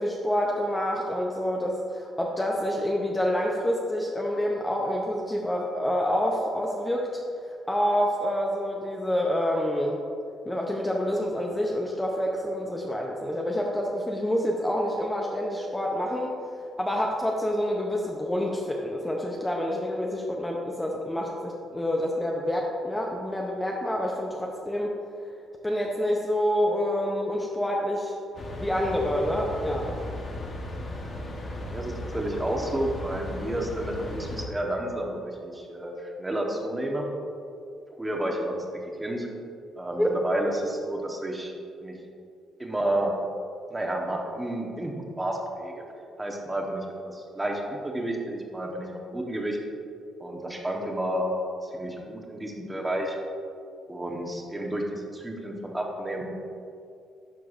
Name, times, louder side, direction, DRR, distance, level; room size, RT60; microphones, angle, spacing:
voice 1, 0.0-7.1 7.4-10.0 10.5-16.4 16.6-25.0 25.6-28.2 28.6-30.0 40.0-40.2, equal, 10° left, -1 dB, 0.6 m, -27 dB
sound 1, 28.3-34.5, left 1 dB, 45° left, 1.1 m, -36 dB
voice 2, 31.7-37.0 38.0-38.5 39.0-39.3 39.8-41.5 41.8-42.0 42.6-43.1 43.7-45.8 46.2-49.6 50.2-51.3 51.6-53.2 53.9-56.5, right 1 dB, 15° right, 0 dB, 1.0 m, -31 dB
11.0 x 4.5 x 2.5 m, 2.4 s
cardioid pair, 90°, 0 cm